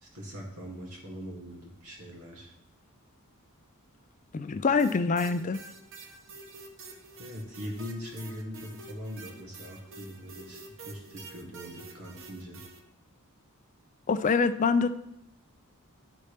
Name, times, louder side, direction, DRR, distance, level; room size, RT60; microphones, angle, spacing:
voice 1, 0.0-2.5 7.2-10.6 10.9-12.6, equal, 80° right, -2 dB, 2.1 m, -41 dB
voice 2, 4.3-5.6 14.1-14.9, left 4 dB, 35° left, 11 dB, 0.4 m, -25 dB
sound 1, 4.8-12.8, right 3 dB, 60° right, 0.9 m, -48 dB
11.5 x 4.2 x 3.3 m, 0.81 s
head